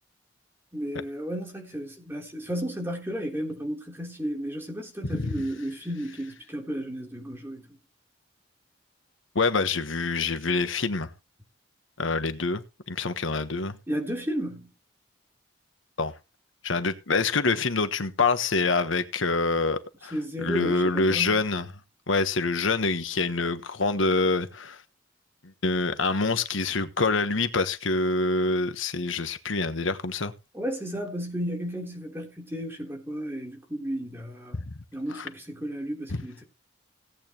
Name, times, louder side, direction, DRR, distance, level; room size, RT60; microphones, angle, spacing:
voice 1, 0.7-7.7 13.9-14.7 20.1-21.4 30.5-34.6 34.9-36.4, equal, 10° right, 3.4 m, -33 dB
voice 2, 5.0-5.4 9.3-11.1 12.0-12.6 12.9-13.8 16.0-16.1 16.6-21.7 22.1-24.8 25.6-30.3 34.5-34.7 35.1-35.3 36.1-36.2, left 3 dB, 85° left, 1.2 m, -26 dB
17.5 x 8.9 x 3.0 m
head